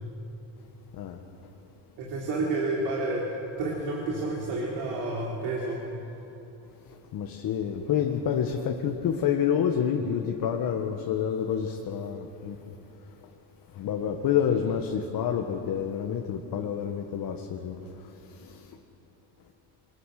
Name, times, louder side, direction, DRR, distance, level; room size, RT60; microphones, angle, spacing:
voice 1, 2.0-5.8, right 2 dB, 75° right, -2 dB, 3.4 m, -30 dB
voice 2, 7.1-12.6 13.8-17.8 18.4-18.7, left 8 dB, 55° left, 3 dB, 1.6 m, -28 dB
23.0 x 19.5 x 6.6 m, 2.9 s
cardioid pair, 100°, 40 cm